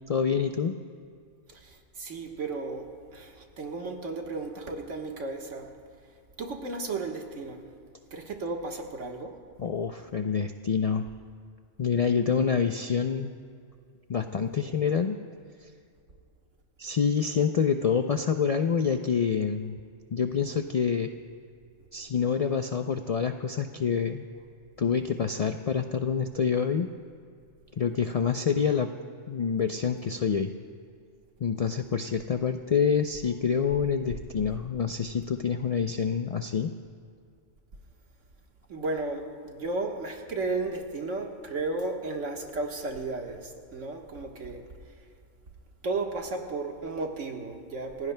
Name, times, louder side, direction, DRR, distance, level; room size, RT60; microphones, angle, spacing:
voice 1, 0.1-0.7 9.6-11.1 11.8-13.3 14.1-15.2 16.8-19.8 20.1-21.1 21.9-24.2 24.8-26.9 27.8-28.9 29.3-30.5 31.4-36.7, left 6 dB, 75° left, 6 dB, 0.3 m, -27 dB
voice 2, 1.5-5.7 6.4-7.6 8.1-9.4 38.7-44.6 45.8-48.1, right 3 dB, 75° right, 2 dB, 1.7 m, -34 dB
28.5 x 16.0 x 2.2 m, 2.3 s
omnidirectional pair, 1.3 m